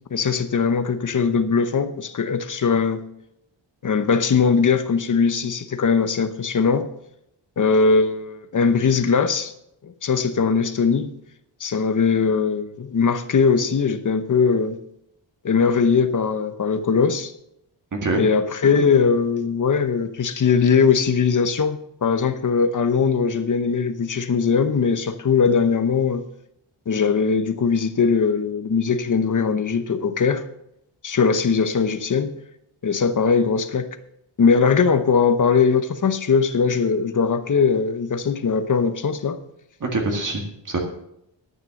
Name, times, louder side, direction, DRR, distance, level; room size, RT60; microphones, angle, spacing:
voice 1, 0.1-3.0 3.8-6.9 7.6-9.5 9.8-11.2 11.6-14.8 15.4-17.3 18.2-26.2 26.9-30.4 31.0-32.4 32.8-33.9 34.4-39.4, left 5 dB, 40° left, 0.9 m, -20 dB
voice 2, 17.9-18.2 39.8-40.8, right 2 dB, 40° right, 1.9 m, -25 dB
11.0 x 9.0 x 6.4 m
wide cardioid pair, 160°, 46 cm